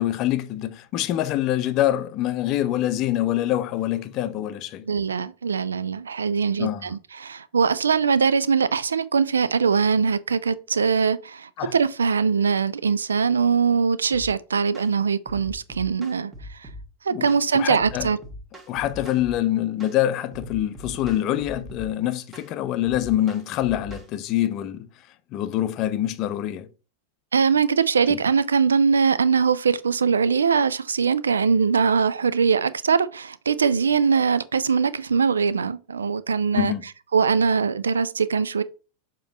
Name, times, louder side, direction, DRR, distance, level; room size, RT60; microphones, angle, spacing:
voice 1, 0.0-4.9 6.6-6.9 11.6-11.7 17.1-17.3 17.5-18.1 18.7-24.9 25.3-26.7 28.1-28.2 36.5-36.8, left 13 dB, 40° left, 0.6 m, -25 dB
voice 2, 4.9-16.7 17.0-18.2 27.3-36.7 37.1-38.6, right 5 dB, 70° right, 0.3 m, -22 dB
sound 1, 14.1-14.3 14.7-14.9 15.3-16.9 17.3-17.5 17.8-19.4 19.8-20.0 20.3-21.9 22.3-22.5 22.8-24.1, equal, 20° right, 1.5 m, -40 dB
7.0 x 3.0 x 5.2 m
figure-of-eight pair, 90°, 0 cm